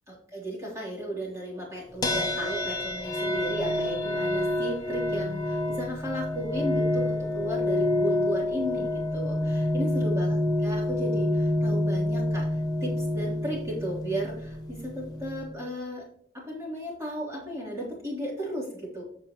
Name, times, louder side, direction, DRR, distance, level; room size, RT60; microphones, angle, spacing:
voice 1, 0.1-10.4 10.6-16.0 16.3-19.1, right 1 dB, 15° right, -6 dB, 3.3 m, -35 dB
sound 1, 2.0-15.5, left 1 dB, 20° left, 1.0 m, -28 dB
14.5 x 5.3 x 3.0 m, 0.66 s
head